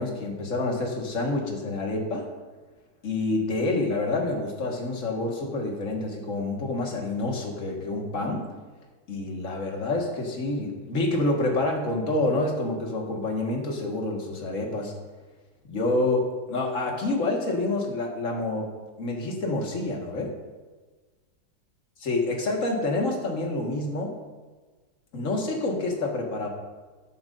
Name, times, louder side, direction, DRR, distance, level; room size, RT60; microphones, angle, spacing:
voice 1, 0.0-2.3 3.0-8.4 9.1-14.9 15.7-18.7 19.0-20.3 22.0-24.2 25.1-26.5, left 2 dB, 45° left, 0 dB, 2.0 m, -28 dB
14.0 x 10.5 x 2.6 m, 1.3 s
omnidirectional pair, 2.0 m